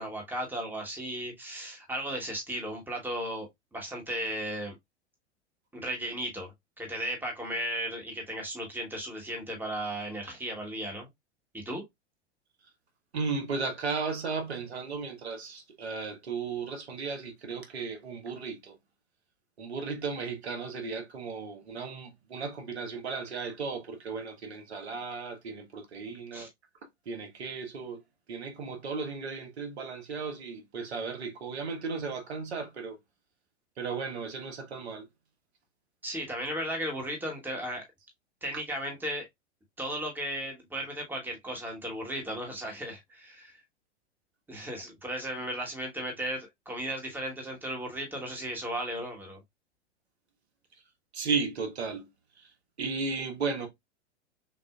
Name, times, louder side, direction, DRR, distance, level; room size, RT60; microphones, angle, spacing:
voice 1, 0.0-4.7 5.7-11.1 11.5-11.8 26.3-26.5 36.0-37.8 38.4-39.3 39.8-43.5 44.5-49.4, right 1 dB, 5° right, 1.3 m, -35 dB
voice 2, 13.1-18.7 19.6-26.5 27.0-28.0 28.3-33.0 33.8-35.1 51.1-52.1 52.4-52.5 52.8-53.7, right 4 dB, 65° right, 1.4 m, -35 dB
6.1 x 2.6 x 2.3 m
figure-of-eight pair, 100°, 34 cm